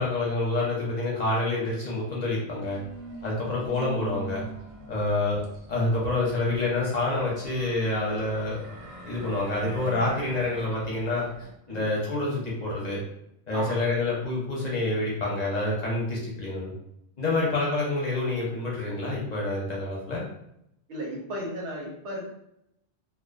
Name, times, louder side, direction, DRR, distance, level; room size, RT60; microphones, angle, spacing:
voice 1, 0.0-2.8 3.2-4.4 4.9-5.4 5.7-8.6 9.1-11.3 11.7-13.0 13.5-16.7 17.2-20.2, left 2 dB, 45° left, -4 dB, 0.6 m, -27 dB
sound 1, 2.2-11.5, right 1 dB, 55° right, 0.5 m, -44 dB
voice 2, 13.5-13.9 20.9-22.3, right 1 dB, 90° right, -2 dB, 1.1 m, -35 dB
2.4 x 2.1 x 2.4 m, 0.76 s
omnidirectional pair, 1.1 m